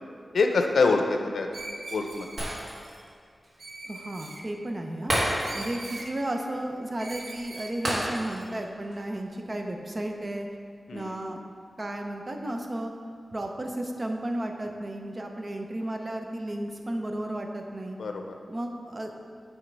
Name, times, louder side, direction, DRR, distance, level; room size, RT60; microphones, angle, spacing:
voice 1, 0.3-1.5 1.9-2.3 5.5-5.6 10.9-11.1 18.0-18.2, left 3 dB, 90° left, 4 dB, 0.6 m, -25 dB
Screech, 1.5-2.5 3.6-4.4 5.4-6.1 7.0-7.8, right 2 dB, 75° right, 0.7 m, -41 dB
Shatter, 2.4-3.1 3.4-3.6 5.1-5.9 6.2-6.3 7.8-8.6 8.9-9.1, right 1 dB, 55° right, 1.7 m, -30 dB
voice 2, 3.8-5.1 5.5-10.5 10.9-11.4 11.8-12.9 13.3-18.0 18.5-19.1, right 1 dB, 35° right, 3 dB, 0.7 m, -33 dB
8.8 x 3.6 x 5.3 m, 2.2 s
wide cardioid pair, 115°, 0 cm